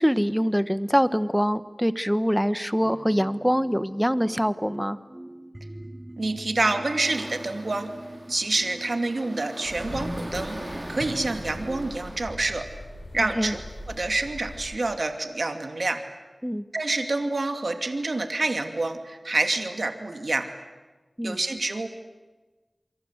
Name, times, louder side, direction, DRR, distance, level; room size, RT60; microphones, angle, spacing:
voice 1, 0.0-5.0 13.4-13.5 16.4-16.6 21.2-21.4, equal, ahead, 13 dB, 1.2 m, -24 dB
sound 1, 2.8-12.1, right 1 dB, 25° right, 2.6 m, -42 dB
voice 2, 6.2-7.9 8.3-10.6 10.9-12.7 13.1-13.6 13.9-16.0 16.7-20.5 21.2-21.9, right 2 dB, 65° right, 6 dB, 2.6 m, -27 dB
sound 2, 7.1-12.2, right 1 dB, 40° right, 6.9 m, -42 dB
sound 3, 9.6-14.7, left 1 dB, 70° left, 7.1 m, -39 dB
28.0 x 24.5 x 8.2 m, 1.2 s
wide cardioid pair, 55°, 0 cm